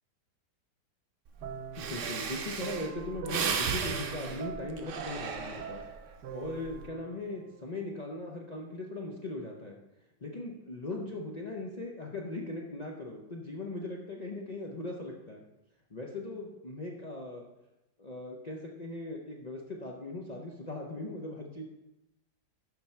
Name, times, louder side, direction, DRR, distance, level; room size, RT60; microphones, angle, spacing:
Breathing, 1.4-1.5 1.7-6.0 6.5-6.8, right 6 dB, 60° right, 0.9 m, -35 dB
sound 1, 1.4-7.8, right 7 dB, 75° right, 1.2 m, -43 dB
voice 1, 1.8-5.8 6.3-9.8 10.2-15.4 15.9-17.4 18.0-21.7, left 2 dB, 75° left, -1 dB, 0.3 m, -39 dB
11.5 x 3.8 x 4.4 m, 0.94 s
omnidirectional pair, 1.9 m